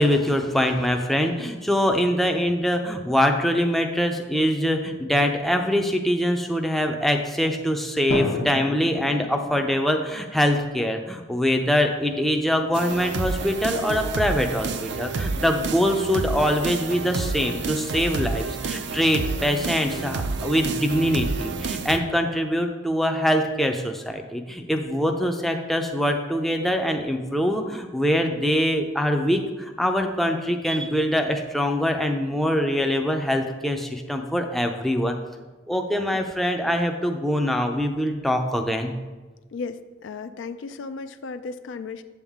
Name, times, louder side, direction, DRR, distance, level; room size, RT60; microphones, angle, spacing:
voice 1, 0.0-35.2 35.7-38.9, equal, ahead, 3 dB, 0.5 m, -23 dB
Drum, 8.1-10.0, left 2 dB, 80° left, 1.0 m, -31 dB
sound 1, 12.7-22.0, right 4 dB, 55° right, 0.5 m, -29 dB
voice 2, 39.5-42.0, left 4 dB, 65° left, 11 dB, 0.4 m, -35 dB
7.7 x 7.1 x 3.6 m, 1.3 s
head